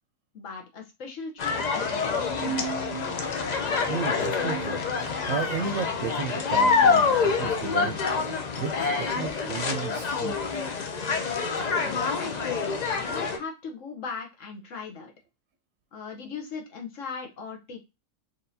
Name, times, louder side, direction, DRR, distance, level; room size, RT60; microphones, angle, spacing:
voice 1, 0.3-2.9 12.0-12.6 12.9-15.1 15.9-17.8, left 5 dB, 60° left, 3 dB, 1.4 m, -39 dB
sound 1, 1.4-13.4, left 5 dB, 80° left, 0.3 m, -26 dB
sound 2, 2.1-5.5, right 5 dB, 20° left, 0.5 m, -38 dB
voice 2, 3.9-4.8 5.3-10.6 11.9-12.0, right 5 dB, 70° right, 5 dB, 0.9 m, -34 dB
4.3 x 3.2 x 2.7 m, 0.25 s
omnidirectional pair, 1.5 m